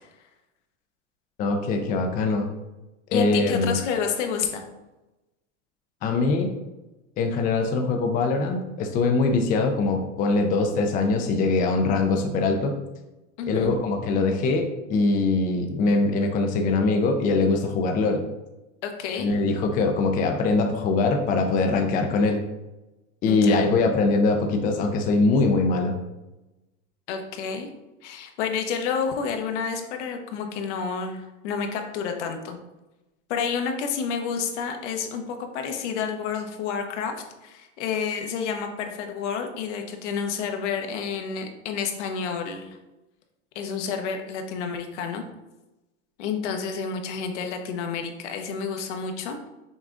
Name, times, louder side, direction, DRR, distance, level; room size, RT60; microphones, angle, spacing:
voice 1, 1.4-2.5 3.1-3.8 6.0-6.5 7.2-12.8 13.5-18.2 19.2-22.4 23.2-26.0, left 3 dB, 25° left, 3 dB, 0.4 m, -22 dB
voice 2, 3.1-4.6 13.4-13.7 18.8-19.3 23.3-23.6 27.1-27.7 28.0-32.6 33.3-37.1 37.4-42.8 43.5-45.2 46.2-49.5, left 6 dB, 70° left, 5 dB, 0.9 m, -29 dB
6.0 x 2.3 x 3.7 m, 1.0 s
supercardioid pair, 135°, 36 cm